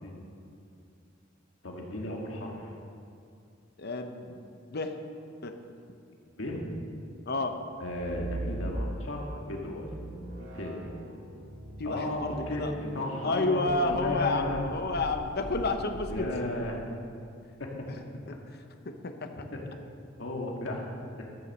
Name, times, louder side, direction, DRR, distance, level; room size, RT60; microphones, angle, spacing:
voice 1, 1.6-2.7 6.4-6.7 7.8-9.9 10.3-10.8 11.8-14.6 16.1-16.8 17.6-17.7 19.5-19.6 20.2-20.8, left 1 dB, 75° left, -1 dB, 1.9 m, -34 dB
voice 2, 3.8-5.0 5.4-5.6 7.3-7.6 11.8-12.7 13.2-16.3 18.3-18.4 18.9-19.5, left 2 dB, 55° left, 6 dB, 0.9 m, -31 dB
sound 1, 7.8-9.2 9.7-16.7, right 1 dB, 75° right, 1.4 m, -40 dB
12.5 x 7.3 x 6.6 m, 2.5 s
head